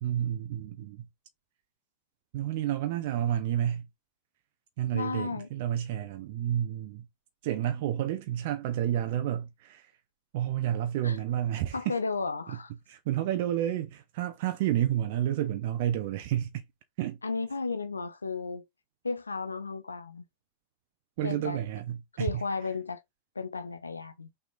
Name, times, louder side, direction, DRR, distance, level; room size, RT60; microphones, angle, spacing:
voice 1, 0.0-1.1 2.3-3.9 4.8-7.1 7.4-9.9 10.3-11.9 12.9-16.6 17.0-17.2 21.2-22.4, right 11 dB, 50° right, 0.5 m, -30 dB
voice 2, 4.9-5.5 11.0-11.2 11.7-12.7 17.2-18.6 19.0-20.2 21.2-21.6 22.2-23.0 23.4-24.3, left 4 dB, 75° left, 0.5 m, -33 dB
5.8 x 3.5 x 2.5 m
figure-of-eight pair, 90°, 0 cm